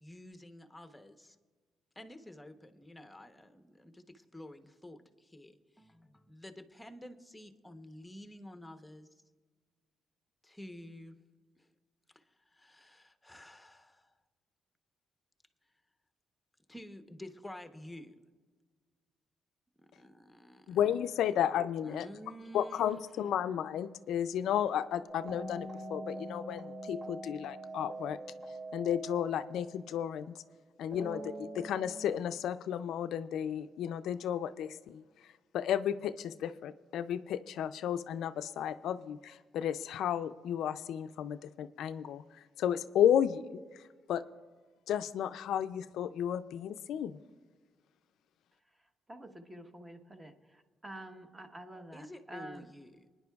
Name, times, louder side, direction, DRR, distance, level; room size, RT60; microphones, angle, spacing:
voice 1, 0.0-1.4 2.0-9.2 10.4-11.2 11.6-11.7 12.1-14.1 16.7-18.2 19.8-20.8 21.8-23.0 51.9-53.1, left 1 dB, 5° left, 7 dB, 0.9 m, -50 dB
voice 2, 20.7-22.1 22.5-28.2 28.7-30.3 30.8-35.0 35.5-43.8 44.1-44.2 44.9-47.2, left 9 dB, 80° left, 12 dB, 0.3 m, -33 dB
sound 1, 25.1-30.2 30.9-32.1, right 1 dB, 45° right, 2.4 m, -44 dB
voice 3, 49.1-52.7, right 1 dB, 15° right, 6 dB, 1.1 m, -48 dB
24.5 x 10.0 x 2.3 m, 1.5 s
cardioid pair, 90°, 0 cm